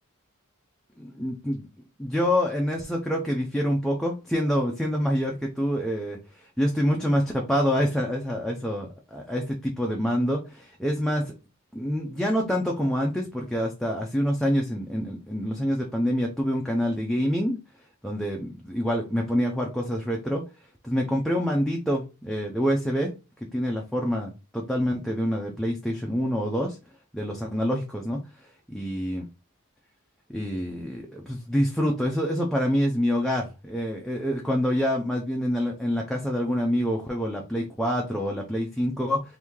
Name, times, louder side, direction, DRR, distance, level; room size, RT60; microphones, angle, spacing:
voice 1, 1.0-1.6 2.0-11.3 11.7-17.6 18.0-20.4 20.8-23.1 23.5-26.8 27.1-28.2 28.7-29.2 30.3-39.2, equal, ahead, -1 dB, 0.4 m, -26 dB
3.1 x 2.6 x 3.5 m, 0.30 s
head